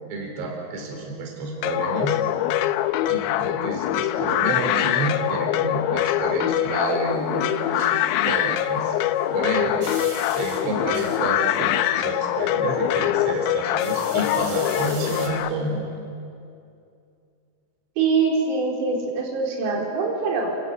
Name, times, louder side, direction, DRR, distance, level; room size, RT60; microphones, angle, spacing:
voice 1, 0.0-2.2 3.1-8.9 9.3-9.8 10.4-15.9, right 2 dB, 55° right, 1 dB, 5.7 m, -29 dB
sound 1, 1.6-15.5, left 13 dB, 80° left, 3.4 m, -24 dB
sound 2, 6.9-15.3, right 2 dB, 25° right, 3.6 m, -41 dB
voice 2, 18.0-20.6, right 4 dB, 85° right, -2 dB, 6.6 m, -23 dB
29.5 x 23.0 x 8.2 m, 2.5 s
omnidirectional pair, 6.0 m